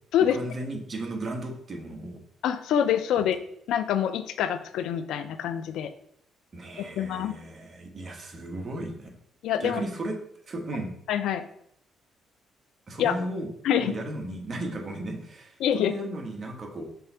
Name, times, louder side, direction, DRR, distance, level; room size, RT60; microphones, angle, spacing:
voice 1, 0.3-2.2 6.5-9.1 9.6-10.1 10.5-10.9 12.9-13.5 13.8-16.8, right 1 dB, 35° right, 2 dB, 1.3 m, -35 dB
voice 2, 2.4-3.4 3.7-5.9 6.8-7.3 9.4-9.8 11.1-11.4 13.0-13.1 13.6-13.9 15.6-15.9, left 9 dB, 80° left, 11 dB, 0.5 m, -25 dB
5.4 x 3.3 x 5.5 m, 0.68 s
cardioid pair, 110°, 0 cm